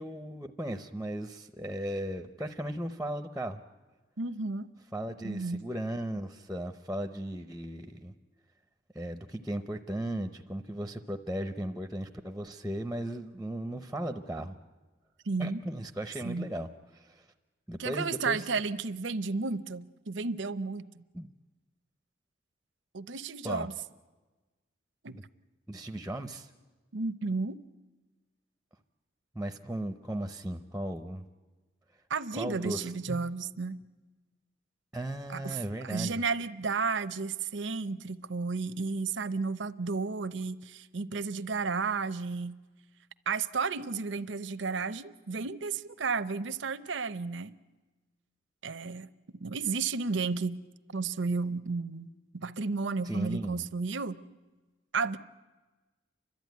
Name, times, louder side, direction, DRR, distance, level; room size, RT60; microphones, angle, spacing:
voice 1, 0.0-3.6 4.9-8.1 8.9-14.6 15.4-16.7 16.9-17.3 17.7-18.5 21.1-21.3 23.4-23.7 25.1-25.2 25.7-26.5 29.3-31.3 32.3-33.2 34.9-36.2 53.0-53.6, right 1 dB, 5° right, 7 dB, 0.6 m, -36 dB
voice 2, 4.2-4.7 5.2-5.6 15.3-15.6 16.2-16.5 17.8-21.0 22.9-23.7 25.0-25.2 26.9-27.6 32.1-33.8 35.3-42.6 43.3-47.5 48.6-49.1 49.4-50.6 50.9-54.2 54.9-55.2, right 4 dB, 75° right, 12 dB, 0.7 m, -33 dB
30.0 x 12.5 x 9.4 m, 1.3 s
head